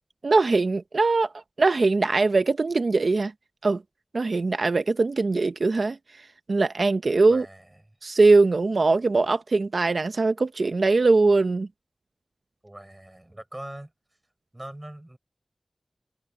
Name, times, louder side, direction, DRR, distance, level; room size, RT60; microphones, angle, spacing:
voice 1, 0.2-1.3 1.6-3.3 3.6-3.8 4.1-6.0 6.5-7.5 8.0-11.7, right 3 dB, 85° right, 0.7 m, -21 dB
voice 2, 7.3-7.8 12.6-13.9 14.5-15.2, right 1 dB, 25° right, 6.3 m, -41 dB
wide cardioid pair, 60°, 0 cm